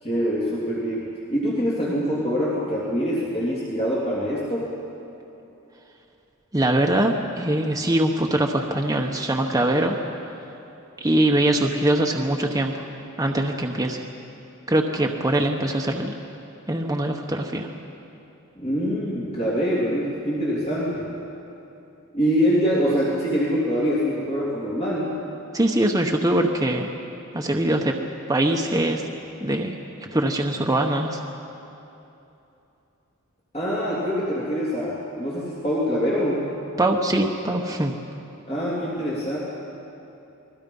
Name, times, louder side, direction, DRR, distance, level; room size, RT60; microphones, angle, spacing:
voice 1, 0.0-4.7 18.5-21.1 22.1-25.1 33.5-36.5 38.5-39.4, equal, 30° left, -7 dB, 3.1 m, -24 dB
voice 2, 6.5-10.0 11.0-12.9 13.2-14.0 14.7-16.2 16.7-17.7 25.5-26.9 27.3-28.0 28.3-29.0 29.4-29.8 30.1-31.2 36.8-37.9, right 1 dB, 15° right, 1 dB, 1.0 m, -22 dB
29.5 x 21.0 x 5.5 m, 2.9 s
head